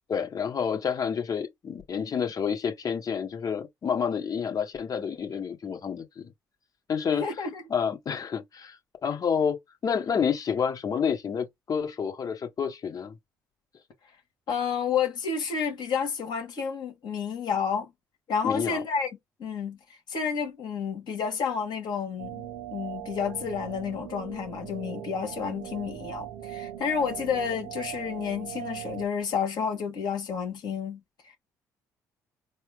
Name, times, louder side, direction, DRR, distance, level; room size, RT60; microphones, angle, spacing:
voice 1, 0.1-6.3 6.9-7.3 7.7-13.2 18.4-18.8, left 7 dB, 50° left, 1.6 m, -29 dB
voice 2, 7.2-7.6 14.5-17.9 18.3-19.1 19.4-19.8 20.1-31.4, left 6 dB, 65° left, 1.9 m, -30 dB
sound 1, 22.2-29.1, right 12 dB, 80° right, 0.8 m, -39 dB
4.2 x 2.1 x 3.5 m
hypercardioid pair, 55°, 8 cm